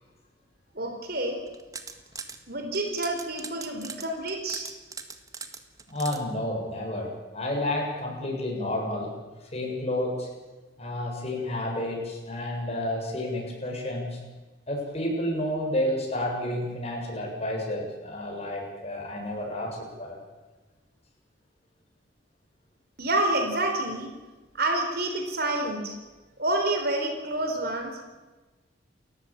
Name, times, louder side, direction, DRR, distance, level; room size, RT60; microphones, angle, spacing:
voice 1, 0.7-1.4 2.5-4.7 23.0-24.1 24.5-26.0 26.4-28.0, right 2 dB, 55° right, 4 dB, 4.2 m, -28 dB
sound 1, 1.5-2.4 2.7-6.2, right 5 dB, 20° right, 1.7 m, -40 dB
voice 2, 5.9-9.1 9.5-10.3 10.8-14.2 14.7-20.1, left 1 dB, 35° left, 0 dB, 7.0 m, -30 dB
30.0 x 14.0 x 8.9 m, 1.2 s
head